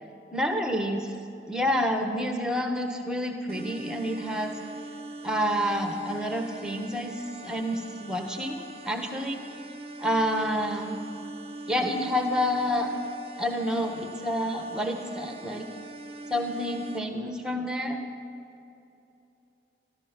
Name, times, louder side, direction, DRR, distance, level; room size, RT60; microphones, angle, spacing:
voice 1, 0.3-1.1 1.5-4.5 5.2-7.2 7.4-9.4 10.0-11.0 11.7-12.9 13.4-15.6 16.3-18.0, equal, 5° right, 4 dB, 1.1 m, -28 dB
sound 1, 3.5-17.0, right 2 dB, 35° right, 0.8 m, -42 dB
14.0 x 13.5 x 6.0 m, 2.7 s
head